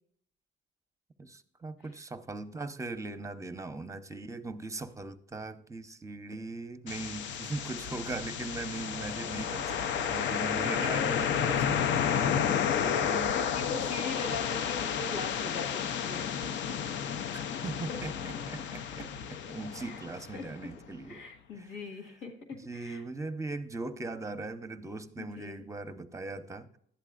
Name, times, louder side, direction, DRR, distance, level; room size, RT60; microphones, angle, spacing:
voice 1, 1.2-11.8 12.8-13.4 17.3-21.2 21.6-21.7 22.5-26.7, right 3 dB, 15° right, 11 dB, 0.6 m, -39 dB
sound 1, 6.9-20.7, left 8 dB, 70° left, 0.5 m, -31 dB
voice 2, 10.6-11.1 12.5-13.1 13.3-17.0 17.4-17.6 17.9-18.0 19.8-20.4 21.1-22.3 22.7-23.0 25.2-25.6, left 4 dB, 85° left, 3 dB, 1.6 m, -41 dB
11.5 x 8.2 x 2.4 m, 0.68 s
cardioid pair, 90°, 20 cm